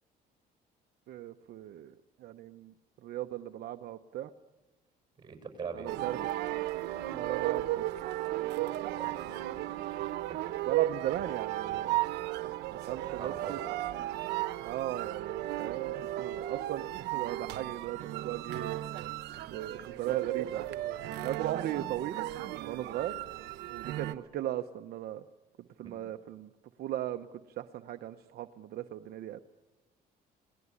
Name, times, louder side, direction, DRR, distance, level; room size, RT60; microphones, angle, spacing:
voice 1, 1.1-2.7 3.0-4.3 5.7-6.2 7.0-7.9 10.7-12.0 12.7-13.6 14.6-18.8 19.5-20.7 21.2-22.2 22.5-23.2 23.7-25.2 25.8-26.5 26.8-29.4, right 13 dB, 65° right, 8 dB, 0.9 m, -37 dB
voice 2, 5.2-5.9 8.9-9.4 10.3-10.4 13.2-13.6 25.8-26.0, right 5 dB, 25° right, 6 dB, 7.1 m, -42 dB
sound 1, 5.9-24.1, right 15 dB, 85° right, 1.1 m, -35 dB
29.5 x 19.5 x 9.8 m, 1.1 s
cardioid pair, 110°, 17 cm